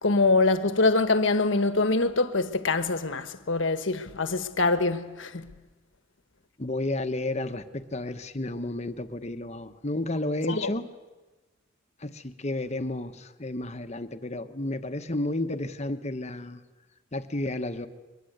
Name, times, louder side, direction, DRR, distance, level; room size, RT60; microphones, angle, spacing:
voice 1, 0.0-5.5 10.5-10.7, left 3 dB, 70° left, 1.3 m, -24 dB
voice 2, 6.6-10.9 12.0-16.6 17.1-17.9, left 2 dB, 35° left, 1.1 m, -32 dB
23.0 x 22.0 x 8.0 m
head